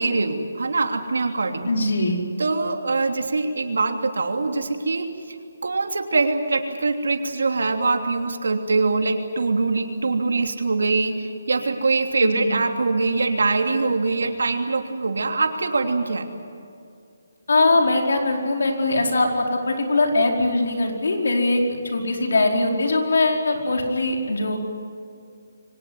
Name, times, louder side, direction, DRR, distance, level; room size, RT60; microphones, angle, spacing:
voice 1, 0.0-1.7 2.4-5.4 5.6-16.3, right 3 dB, 85° right, 5 dB, 3.0 m, -23 dB
voice 2, 1.7-2.2 12.2-12.5 17.5-21.6 21.9-24.6, left 2 dB, 75° left, 1 dB, 4.9 m, -21 dB
24.0 x 18.5 x 9.7 m, 2.4 s
hypercardioid pair, 165°, 0 cm